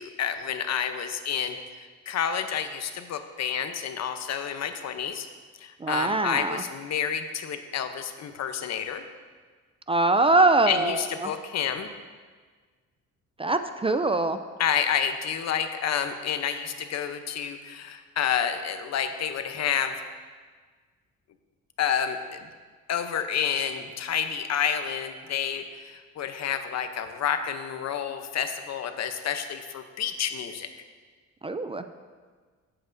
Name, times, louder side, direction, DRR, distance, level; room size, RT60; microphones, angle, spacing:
voice 1, 0.0-5.3 5.6-9.0 10.7-11.9 14.6-20.0 21.8-22.5 22.9-30.7, left 8 dB, 60° left, 8 dB, 0.8 m, -29 dB
voice 2, 5.8-6.6 9.9-11.3 13.4-14.4 31.4-31.8, right 2 dB, 20° right, 9 dB, 0.4 m, -23 dB
14.0 x 7.9 x 2.7 m, 1.5 s
cardioid pair, 90°, 30 cm